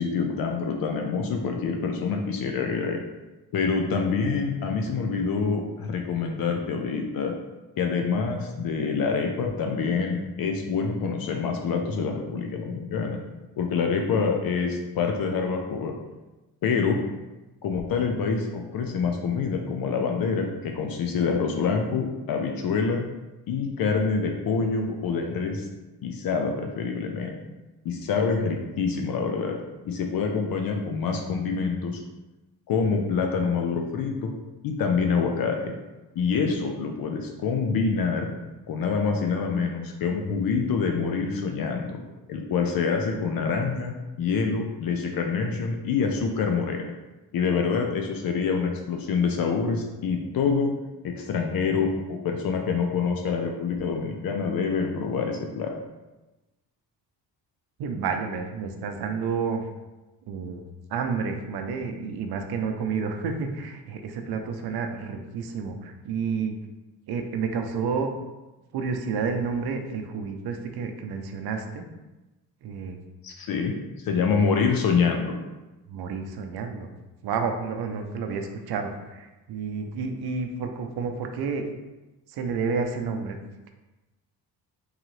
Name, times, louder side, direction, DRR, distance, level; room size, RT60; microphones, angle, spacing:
voice 1, 0.0-3.0 3.5-7.3 7.8-13.2 13.6-15.9 16.6-17.0 17.6-23.0 23.5-25.7 26.0-27.4 27.8-29.6 29.8-32.0 32.7-34.3 34.6-35.7 36.2-38.3 38.7-42.0 42.3-46.9 47.3-50.7 51.0-55.8 73.2-73.8 74.0-75.4, left 5 dB, 55° left, 3 dB, 0.6 m, -26 dB
voice 2, 57.8-59.6 60.3-60.6 60.9-66.5 67.1-68.1 68.7-71.9 72.6-73.0 75.9-76.9 77.2-81.7 82.3-83.4, right 5 dB, 65° right, 5 dB, 0.6 m, -30 dB
3.6 x 3.1 x 3.1 m, 1.1 s
cardioid pair, 100°, 41 cm